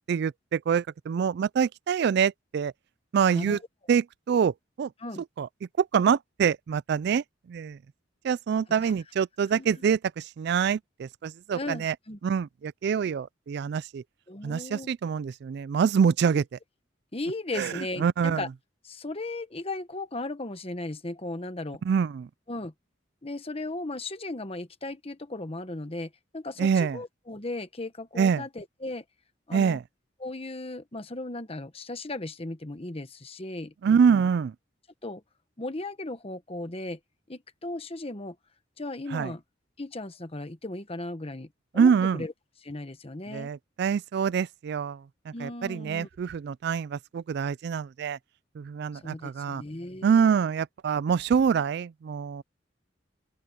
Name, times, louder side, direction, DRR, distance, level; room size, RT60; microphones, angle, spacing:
voice 1, 0.0-2.7 3.1-3.6 3.9-4.9 5.4-5.5 5.8-7.8 8.2-11.9 12.2-14.0 14.4-16.4 17.6-17.7 18.0-18.4 21.9-22.3 26.6-27.0 28.2-28.4 29.5-29.8 33.8-34.5 39.1-39.3 41.8-42.2 43.3-45.0 45.3-48.2 48.6-49.6 50.0-52.4, right 6 dB, 60° right, 0.3 m, -25 dB
voice 2, 9.5-9.9 11.5-12.2 14.3-14.9 17.1-18.5 18.8-21.8 22.5-22.7 23.2-29.0 29.5-29.8 30.2-34.3 35.0-35.2 35.6-37.0 37.3-38.4 38.8-39.4 39.8-42.3 42.6-43.5 45.3-46.1 48.9-50.3, left 2 dB, 30° left, 1.3 m, -36 dB
open air
head